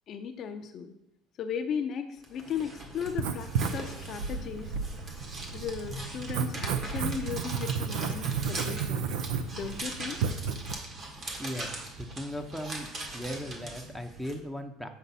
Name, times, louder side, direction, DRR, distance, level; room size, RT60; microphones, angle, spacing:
voice 1, 0.1-0.9 1.4-4.7 5.5-9.1 9.5-10.2, left 7 dB, 45° left, 6 dB, 0.6 m, -36 dB
sound 1, 2.2-14.3, right 2 dB, 40° right, 1.5 m, -41 dB
Writing, 3.1-10.7, right 6 dB, 85° right, 0.6 m, -33 dB
voice 2, 11.4-14.9, equal, ahead, 6 dB, 0.7 m, -38 dB
8.1 x 5.0 x 4.2 m, 0.79 s
cardioid pair, 130°, 0 cm